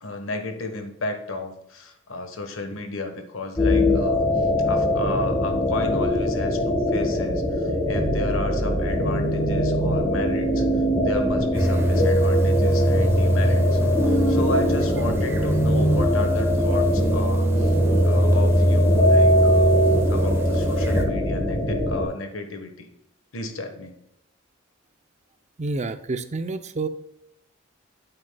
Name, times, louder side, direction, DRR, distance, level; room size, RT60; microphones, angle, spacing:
voice 1, 0.0-13.8 14.1-17.7 18.0-19.7 20.1-22.9 23.3-23.9, left 2 dB, 70° left, 6 dB, 1.3 m, -33 dB
sound 1, 3.6-22.0, equal, 20° left, 1.5 m, -22 dB
sound 2, 11.5-21.1, right 1 dB, 10° right, 0.8 m, -22 dB
voice 2, 25.6-26.9, right 3 dB, 35° right, 10 dB, 0.5 m, -28 dB
9.0 x 7.8 x 2.3 m, 0.79 s
head